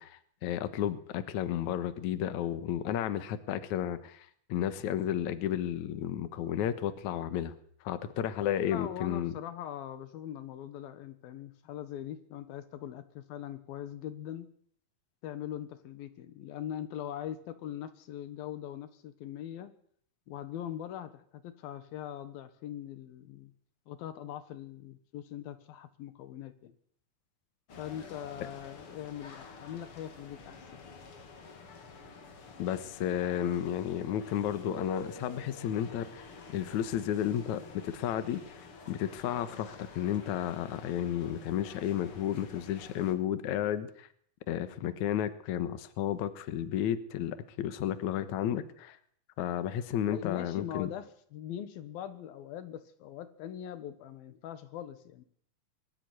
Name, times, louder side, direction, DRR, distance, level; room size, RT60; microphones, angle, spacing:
voice 1, 0.0-7.5 7.8-9.3 32.6-36.2 36.5-38.4 38.9-44.1 44.5-49.0 49.4-50.9, left 10 dB, 65° left, 12 dB, 2.4 m, -32 dB
voice 2, 8.7-14.5 15.2-19.7 20.3-23.5 23.9-26.7 27.8-31.0 50.1-55.2, left 10 dB, 90° left, 12 dB, 3.3 m, -42 dB
sound 1, 27.7-43.1, left 4 dB, 40° left, 2.8 m, -50 dB
Keyboard (musical), 34.7-36.7, right 7 dB, 70° right, 2.9 m, -49 dB
22.0 x 14.0 x 9.5 m, 0.62 s
omnidirectional pair, 4.1 m